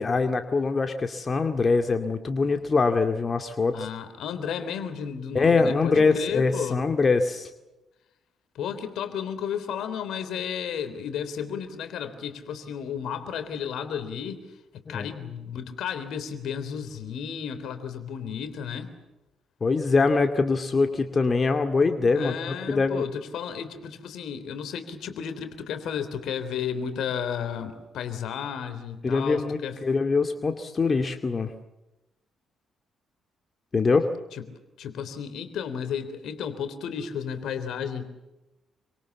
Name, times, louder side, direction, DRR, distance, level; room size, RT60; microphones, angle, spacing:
voice 1, 0.0-3.9 5.3-7.5 14.9-15.1 19.6-23.0 29.0-31.5 33.7-34.1, left 4 dB, 40° left, 6 dB, 2.3 m, -23 dB
voice 2, 3.7-6.8 8.6-14.5 14.7-18.9 22.1-29.8 34.3-34.5 34.8-38.1, left 7 dB, 70° left, 10 dB, 3.5 m, -33 dB
27.5 x 25.0 x 7.2 m, 1.0 s
hypercardioid pair, 45°, 0 cm